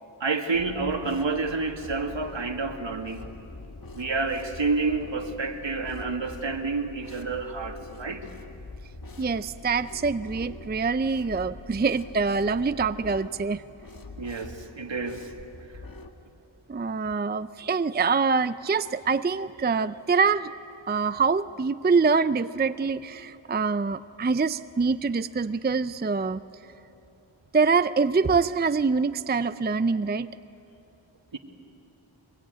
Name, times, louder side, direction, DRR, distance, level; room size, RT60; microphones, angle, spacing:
voice 1, 0.2-3.2 3.9-8.3 14.2-15.3 31.3-31.4, right 3 dB, 65° right, 5 dB, 2.0 m, -29 dB
sound 1, 0.5-16.1, left 3 dB, 45° left, 1.9 m, -44 dB
voice 2, 9.2-13.6 16.7-20.5 20.9-26.4 27.5-30.3, right 4 dB, 20° right, 13 dB, 0.5 m, -25 dB
24.0 x 22.5 x 9.3 m, 2.8 s
cardioid pair, 40°, 48 cm